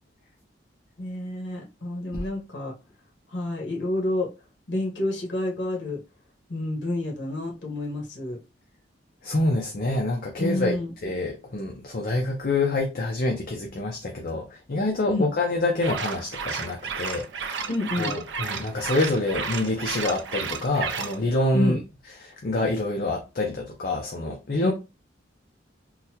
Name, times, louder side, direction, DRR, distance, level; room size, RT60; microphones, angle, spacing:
voice 1, 1.0-2.7 3.3-4.3 4.7-6.0 6.5-8.4 10.4-10.9 15.1-15.3 17.7-18.1 21.5-21.8 24.6-24.7, left 1 dB, 75° left, 1.2 m, -28 dB
voice 2, 9.2-17.7 18.0-21.8 22.2-24.7, left 2 dB, 50° left, 0.6 m, -27 dB
sound 1, 15.8-21.2, right 6 dB, 70° right, 0.5 m, -32 dB
3.9 x 2.2 x 2.8 m
head